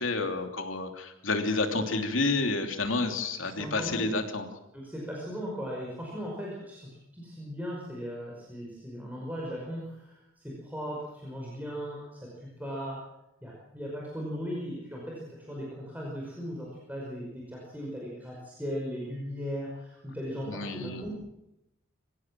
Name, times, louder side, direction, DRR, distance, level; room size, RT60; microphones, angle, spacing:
voice 1, 0.0-4.5 20.5-21.1, left 3 dB, 75° left, 4 dB, 3.0 m, -30 dB
voice 2, 3.6-4.2 4.7-13.0 13.4-21.2, equal, 10° right, -4 dB, 5.4 m, -38 dB
26.0 x 16.0 x 7.6 m, 0.90 s
head